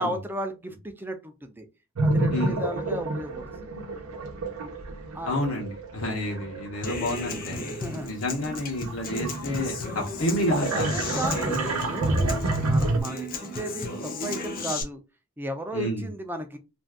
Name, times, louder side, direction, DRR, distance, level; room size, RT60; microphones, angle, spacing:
voice 1, 0.0-1.7 2.0-3.7 5.1-5.3 7.6-8.1 10.7-12.2 12.6-15.0 15.4-16.6, right 1 dB, 10° right, 6 dB, 0.4 m, -34 dB
sound 1, 2.0-7.9 8.4-13.0, right 2 dB, 85° right, 0.7 m, -28 dB
voice 2, 2.3-2.6 5.2-7.6 8.0-10.9 11.3-11.8 12.2-12.5 15.7-16.1, left 1 dB, 75° left, -2 dB, 0.8 m, -30 dB
Human voice / Acoustic guitar, 6.8-14.8, left 3 dB, 40° left, 0.6 m, -35 dB
2.6 x 2.3 x 3.4 m, 0.27 s
head